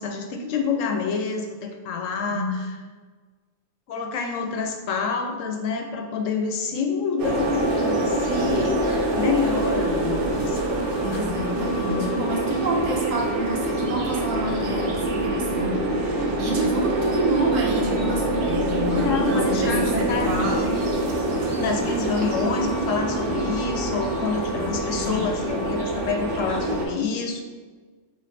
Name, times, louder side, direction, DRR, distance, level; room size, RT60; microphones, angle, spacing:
voice 1, 0.0-2.7 3.9-10.6 11.0-11.4 18.9-20.8 21.6-27.4, left 5 dB, 80° left, 3 dB, 1.0 m, -28 dB
sound 1, 7.2-26.9, right 1 dB, 55° right, 0.7 m, -25 dB
voice 2, 11.0-15.8 16.4-20.6 24.5-25.2, right 2 dB, 85° right, -1 dB, 1.2 m, -28 dB
3.4 x 3.2 x 4.1 m, 1.4 s
omnidirectional pair, 1.4 m